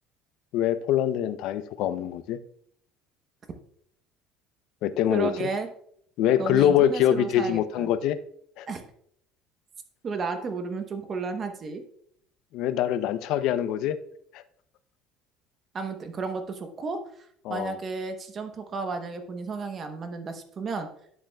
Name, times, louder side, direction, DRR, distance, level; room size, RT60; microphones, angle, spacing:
voice 1, 0.5-2.4 4.8-5.5 6.2-8.2 8.6-8.7 12.5-14.0 14.3-14.4 17.4-17.8, left 11 dB, 60° left, 0.5 m, -24 dB
voice 2, 5.1-5.7 6.4-7.9 8.7-8.8 10.0-11.8 15.7-20.9, right 4 dB, 25° right, 0.8 m, -33 dB
10.0 x 7.1 x 2.2 m
cardioid pair, 160°, 0 cm